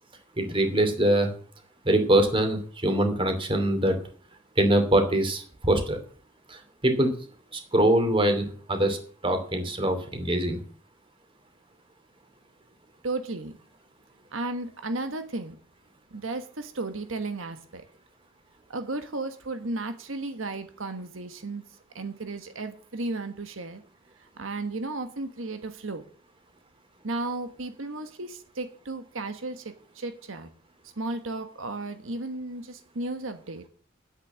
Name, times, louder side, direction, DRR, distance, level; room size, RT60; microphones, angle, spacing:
voice 1, 0.4-1.3 1.8-4.0 4.6-6.0 6.5-7.1 7.5-9.0 9.2-10.6, right 1 dB, 25° right, 6 dB, 2.7 m, -23 dB
voice 2, 13.0-13.5 14.3-15.5 16.1-17.8 18.7-21.6 21.9-23.8 24.4-26.0 27.0-30.5 31.0-33.7, right 2 dB, 85° right, 8 dB, 1.3 m, -34 dB
10.0 x 8.5 x 7.5 m, 0.43 s
head